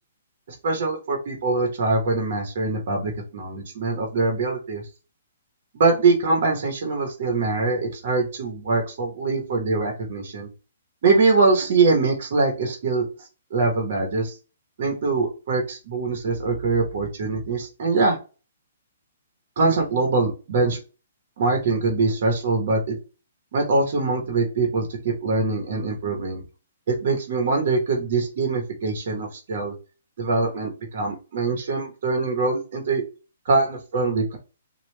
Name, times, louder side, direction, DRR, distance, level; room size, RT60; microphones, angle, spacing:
voice 1, 0.6-4.8 5.7-10.5 11.0-14.3 14.8-18.2 19.6-20.8 21.4-23.0 23.5-26.4 26.9-29.7 30.2-33.0 33.4-34.4, right 3 dB, 55° right, 2 dB, 1.0 m, -23 dB
3.0 x 2.3 x 3.2 m, 0.33 s
hypercardioid pair, 150°, 0 cm